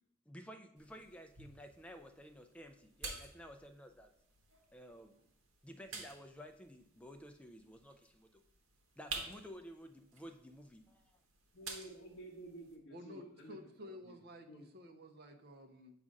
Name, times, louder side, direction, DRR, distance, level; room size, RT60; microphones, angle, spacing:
voice 1, 0.3-4.1 4.7-5.1 5.6-8.4 9.0-11.2, equal, 5° left, 6 dB, 0.3 m, -53 dB
sound 1, 0.8-12.8, right 3 dB, 75° right, 1.0 m, -51 dB
voice 2, 11.5-14.2 14.5-14.7, right 1 dB, 60° left, -2 dB, 0.7 m, -52 dB
voice 3, 12.9-16.0, left 1 dB, 50° right, 5 dB, 0.6 m, -53 dB
7.4 x 2.5 x 5.2 m, 0.74 s
head